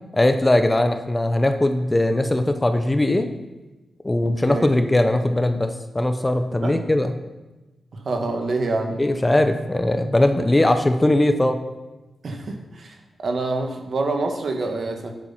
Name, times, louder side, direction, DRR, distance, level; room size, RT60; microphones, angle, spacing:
voice 1, 0.1-3.3 4.0-7.1 9.0-11.6, left 1 dB, 15° left, 7 dB, 0.7 m, -20 dB
voice 2, 4.2-4.7 6.6-6.8 7.9-9.0 10.4-10.5 12.2-13.0 13.2-15.1, right 3 dB, 60° right, 4 dB, 1.5 m, -26 dB
9.1 x 8.0 x 5.8 m, 1.1 s
cardioid pair, 95°, 0 cm